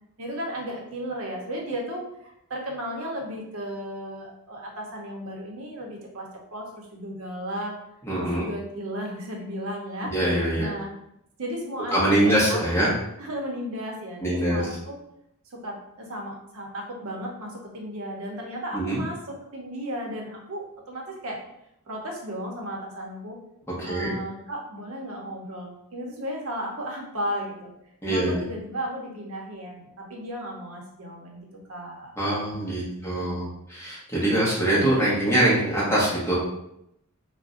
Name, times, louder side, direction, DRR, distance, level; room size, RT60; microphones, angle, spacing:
voice 1, 0.2-7.7 8.2-10.1 10.6-10.9 11.4-12.9 13.2-15.0 15.5-21.4 21.9-23.4 23.8-27.7 28.1-32.1 32.5-33.5, equal, 70° right, 0 dB, 0.7 m, -35 dB
voice 2, 8.0-8.4 10.0-10.7 11.9-12.9 14.2-14.6 18.7-19.0 23.8-24.1 28.0-28.4 32.2-33.4 33.7-36.4, right 1 dB, 10° left, -8 dB, 0.8 m, -23 dB
2.4 x 2.1 x 3.6 m, 0.79 s
head